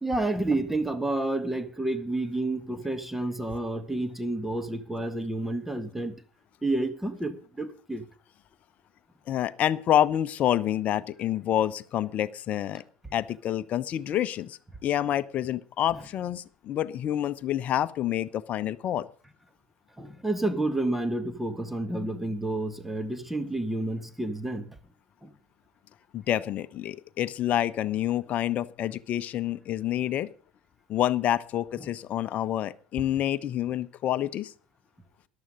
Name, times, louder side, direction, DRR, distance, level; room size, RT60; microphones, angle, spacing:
voice 1, 0.0-6.2 6.6-8.0 20.0-24.8 25.2-25.3 31.8-31.9, right 2 dB, 5° right, 1.8 m, -30 dB
voice 2, 9.3-12.8 13.1-19.1 26.1-30.3 30.9-34.5, left 11 dB, 45° left, 0.8 m, -28 dB
14.0 x 11.5 x 5.3 m
figure-of-eight pair, 65°, 4 cm